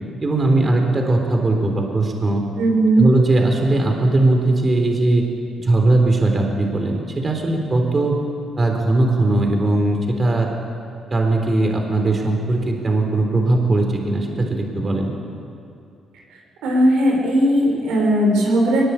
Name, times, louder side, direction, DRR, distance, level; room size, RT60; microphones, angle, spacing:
voice 1, 0.2-2.4 3.0-5.3 5.6-8.2 8.6-10.5 11.1-15.1, right 2 dB, 30° right, 2 dB, 3.9 m, -19 dB
voice 2, 2.6-3.1 16.6-18.8, right 1 dB, 85° right, 0 dB, 6.2 m, -17 dB
22.5 x 21.0 x 8.5 m, 2.6 s
cardioid pair, 90°, 0 cm